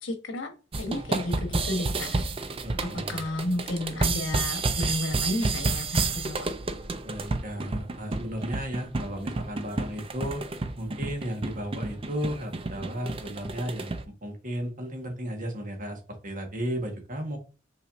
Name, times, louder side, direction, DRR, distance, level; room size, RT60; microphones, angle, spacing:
voice 1, 0.0-2.2 2.8-6.5, left 1 dB, 90° left, 5 dB, 1.1 m, -32 dB
sound 1, 0.7-14.0, right 3 dB, 30° right, 0.5 m, -31 dB
voice 2, 2.6-3.2 7.0-10.4 10.8-13.9 14.2-17.4, equal, 45° right, 3 dB, 1.4 m, -34 dB
5.7 x 3.2 x 2.6 m, 0.33 s
head